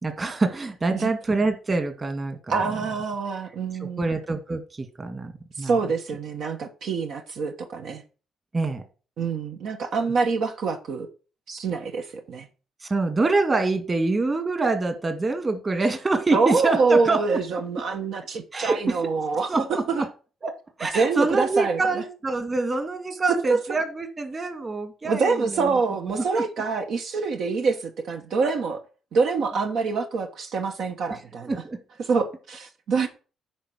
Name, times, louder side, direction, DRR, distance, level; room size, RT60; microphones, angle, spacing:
voice 1, 0.0-2.4 3.8-5.3 5.6-5.7 8.5-8.8 12.8-17.2 18.5-18.8 19.5-20.1 20.4-25.8 26.1-26.2 31.5-31.8, right 3 dB, 30° right, 1.9 m, -25 dB
voice 2, 2.5-4.1 5.6-8.0 9.2-11.1 11.5-12.5 16.3-20.0 20.9-22.0 25.0-28.8 29.1-31.6 32.0-33.1, right 4 dB, 70° right, 1.2 m, -25 dB
10.0 x 4.5 x 6.1 m
cardioid pair, 90°, 0 cm